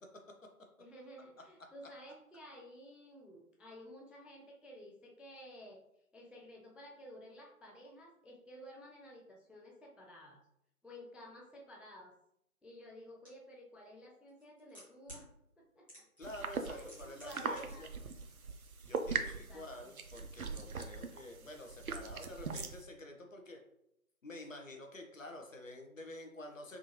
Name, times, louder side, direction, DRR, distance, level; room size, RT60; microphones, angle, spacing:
voice 1, 0.8-5.8 6.1-10.4 10.8-12.1 12.6-15.3 15.6-16.0 16.6-17.8 19.2-19.9, equal, 5° right, 0 dB, 0.3 m, -53 dB
voice 2, 1.6-1.9 16.2-17.9 18.9-23.6 24.2-26.8, left 1 dB, 60° left, 3 dB, 0.7 m, -49 dB
sound 1, 13.2-13.3 14.3-15.2 15.9-16.3 16.5-17.6 17.9-18.0, equal, 20° left, 1.1 m, -53 dB
sound 2, 16.2-22.8, right 4 dB, 70° right, 0.5 m, -41 dB
3.6 x 2.5 x 2.9 m, 0.79 s
figure-of-eight pair, 165°, 44 cm